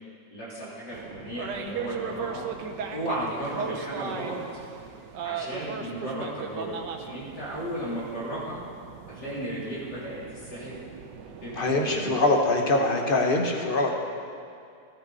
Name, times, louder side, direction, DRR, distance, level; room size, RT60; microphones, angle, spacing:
voice 1, 0.3-2.4 2.9-4.4 5.2-8.6 9.1-10.8 11.4-12.2, right 1 dB, 70° left, -8 dB, 4.4 m, -35 dB
sound 1, 0.9-12.3, right 6 dB, 85° right, 1.5 m, -38 dB
voice 2, 11.5-13.9, left 2 dB, 35° left, 1 dB, 1.3 m, -23 dB
14.0 x 14.0 x 4.2 m, 2.5 s
omnidirectional pair, 1.8 m